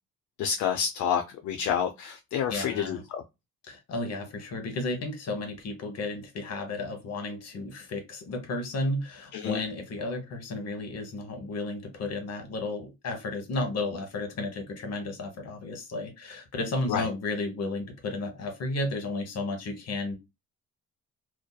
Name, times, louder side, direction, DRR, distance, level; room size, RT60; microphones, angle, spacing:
voice 1, 0.4-3.2 9.3-9.6 16.9-17.1, left 8 dB, 75° left, 0.4 m, -29 dB
voice 2, 2.5-3.0 3.6-20.1, left 2 dB, 55° left, 0.9 m, -33 dB
2.6 x 2.2 x 2.2 m
cardioid pair, 90°, 30 cm